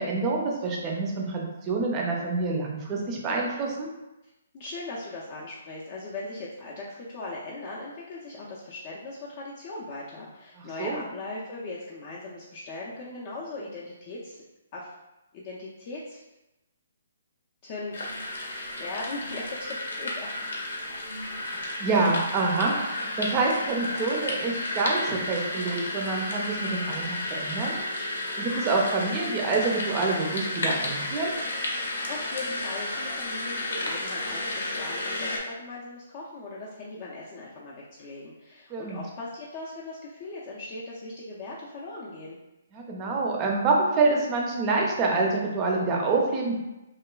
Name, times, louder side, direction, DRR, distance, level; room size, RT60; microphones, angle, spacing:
voice 1, 0.0-3.9 10.8-11.0 21.5-31.3 38.7-39.0 42.7-46.5, right 3 dB, 25° right, -1 dB, 0.5 m, -27 dB
voice 2, 4.5-14.4 14.7-14.9 15.3-16.2 17.6-18.1 18.8-20.3 32.1-42.4, left 2 dB, 35° left, -6 dB, 0.4 m, -39 dB
sound 1, 17.9-35.4, left 2 dB, 75° left, 0.6 m, -32 dB
2.9 x 2.1 x 2.3 m, 0.97 s
hypercardioid pair, 145°, 0 cm